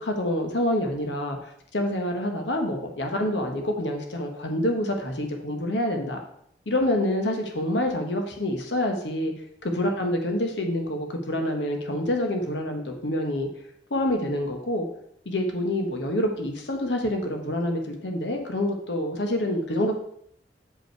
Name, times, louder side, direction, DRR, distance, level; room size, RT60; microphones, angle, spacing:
voice 1, 0.0-6.2 6.7-9.3 9.6-13.5 13.9-14.9 15.2-20.0, left 1 dB, 80° left, 3 dB, 1.2 m, -27 dB
8.7 x 5.4 x 4.5 m, 0.70 s
head